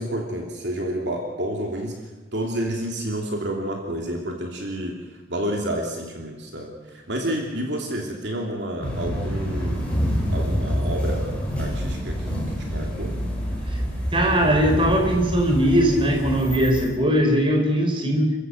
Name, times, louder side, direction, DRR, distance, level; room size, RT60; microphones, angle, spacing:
voice 1, 0.0-2.0 2.3-5.0 5.3-9.9 10.3-13.2, right 1 dB, 60° right, 1 dB, 3.0 m, -29 dB
sound 1, 8.8-16.9, equal, 5° left, 6.0 m, -27 dB
voice 2, 14.1-18.3, equal, 25° right, 2 dB, 4.3 m, -20 dB
28.5 x 15.0 x 7.9 m, 1.2 s
head